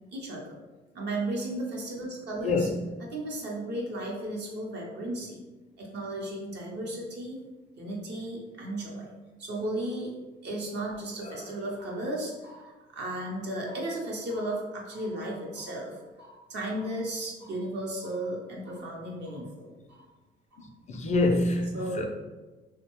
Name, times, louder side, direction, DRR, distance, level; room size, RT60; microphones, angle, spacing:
voice 1, 0.1-0.5 0.9-2.7 3.1-5.4 5.8-7.4 7.8-9.1 9.4-10.2 10.4-20.0 21.7-22.1, right 1 dB, 60° right, -2 dB, 0.7 m, -35 dB
voice 2, 20.9-22.1, left 2 dB, 35° left, 4 dB, 0.4 m, -26 dB
2.6 x 2.1 x 2.9 m, 1.2 s
cardioid pair, 90°, 20 cm